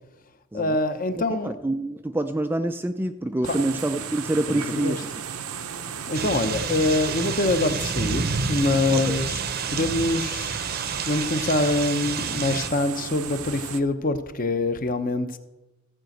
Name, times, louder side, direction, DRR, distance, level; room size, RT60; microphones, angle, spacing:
voice 1, 0.5-1.6 3.5-3.7 4.5-5.0 6.1-9.4 9.7-10.6 11.0-15.4, left 2 dB, 40° left, 9 dB, 0.8 m, -25 dB
voice 2, 1.2-5.2 8.9-9.2, right 1 dB, 10° right, 8 dB, 0.3 m, -27 dB
sound 1, 3.4-13.8, right 8 dB, 80° right, 0.7 m, -35 dB
sound 2, 6.1-12.7, right 5 dB, 45° right, 0.7 m, -29 dB
14.5 x 5.1 x 7.7 m, 1.0 s
head